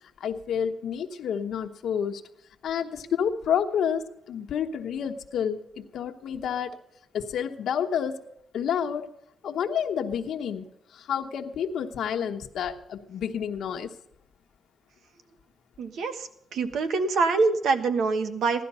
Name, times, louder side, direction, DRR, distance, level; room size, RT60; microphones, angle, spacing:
voice 1, 0.2-2.2 2.6-6.8 7.1-8.2 8.5-9.1 9.4-10.6 10.9-13.9, left 8 dB, 80° left, 4 dB, 1.1 m, -29 dB
voice 2, 15.8-18.6, right 4 dB, 75° right, 8 dB, 1.3 m, -25 dB
16.5 x 12.0 x 5.6 m, 0.77 s
wide cardioid pair, 170°, 0 cm